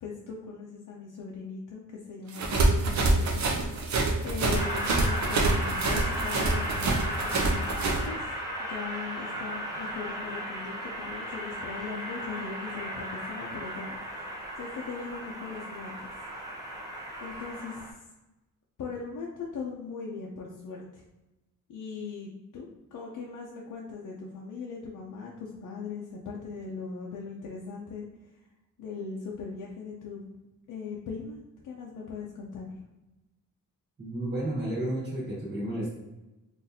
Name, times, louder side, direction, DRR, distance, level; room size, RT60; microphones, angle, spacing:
voice 1, 0.0-8.3 8.6-16.1 17.2-17.9 18.8-21.0 21.7-28.4 28.8-30.2 30.7-31.4 31.6-32.8, left 5 dB, 60° left, -3 dB, 0.6 m, -40 dB
sound 1, 2.3-8.0, right 2 dB, 55° right, 0.6 m, -26 dB
Train, 4.5-17.9, right 1 dB, 10° right, 0.8 m, -35 dB
voice 2, 34.0-35.9, right 1 dB, 35° right, -7 dB, 1.3 m, -32 dB
3.9 x 2.5 x 2.7 m, 1.0 s
wide cardioid pair, 150°, 34 cm